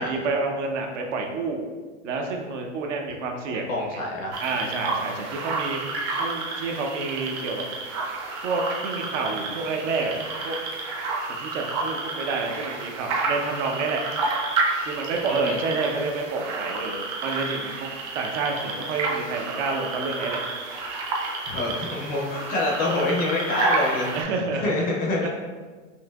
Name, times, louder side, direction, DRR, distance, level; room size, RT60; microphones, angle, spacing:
voice 1, 0.0-1.7 2.0-3.7 4.4-5.8 6.2-7.6 8.4-10.2 10.4-10.6 11.4-14.0 14.8-17.9 18.1-20.4 24.1-24.9 25.2-25.3, right 4 dB, 70° right, 2 dB, 0.8 m, -29 dB
voice 2, 3.5-4.4 15.3-15.6 21.5-24.2 24.6-25.3, left 2 dB, 25° left, -2 dB, 0.5 m, -26 dB
sound 1, 4.3-24.2, right 3 dB, 35° right, 0.7 m, -30 dB
5.6 x 2.7 x 2.3 m, 1.4 s
hypercardioid pair, 135°, 39 cm